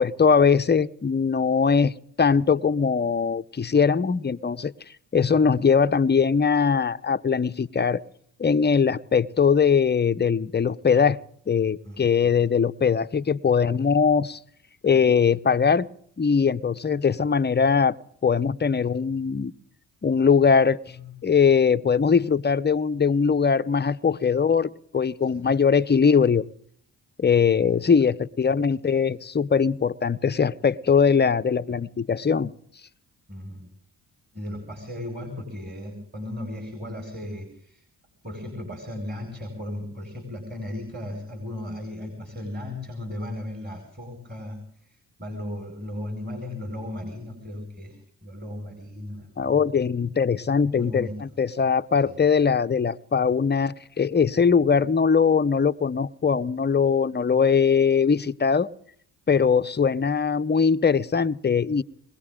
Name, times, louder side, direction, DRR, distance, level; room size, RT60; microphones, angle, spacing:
voice 1, 0.0-4.7 5.1-8.0 8.4-11.2 11.5-14.4 14.8-15.9 16.2-18.0 18.2-19.5 20.0-20.8 21.2-26.4 27.2-32.5 49.4-58.7 59.3-61.8, left 6 dB, 25° left, 0.7 m, -21 dB
voice 2, 11.8-12.4 20.9-21.1 25.2-25.5 27.7-27.9 31.7-31.8 33.3-33.7 34.3-37.8 38.2-49.6 50.8-51.2 52.1-52.2, left 1 dB, 20° right, 5.2 m, -36 dB
21.5 x 17.5 x 3.7 m
supercardioid pair, 55°, 45 cm